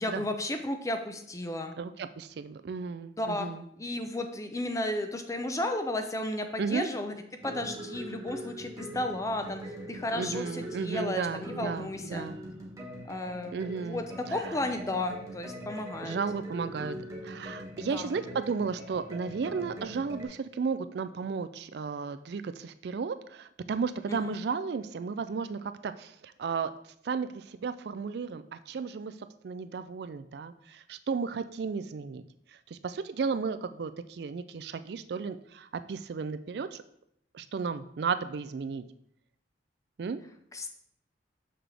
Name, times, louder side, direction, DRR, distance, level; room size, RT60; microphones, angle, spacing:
voice 1, 0.0-1.7 3.2-3.5 3.8-7.1 7.4-9.6 9.9-12.3 13.1-14.0 14.3-16.2 17.9-18.1 24.1-24.3 40.5-40.7, left 1 dB, 15° left, 6 dB, 0.6 m, -33 dB
voice 2, 1.8-3.7 6.6-6.9 10.2-12.4 13.5-14.6 16.0-17.0 17.2-26.7 27.0-29.1 29.4-32.2 32.7-36.8 37.3-38.8 40.0-40.2, right 5 dB, 60° right, 12 dB, 0.4 m, -34 dB
sound 1, 7.4-20.3, equal, 20° right, 1.3 m, -42 dB
6.4 x 5.9 x 3.4 m, 0.71 s
head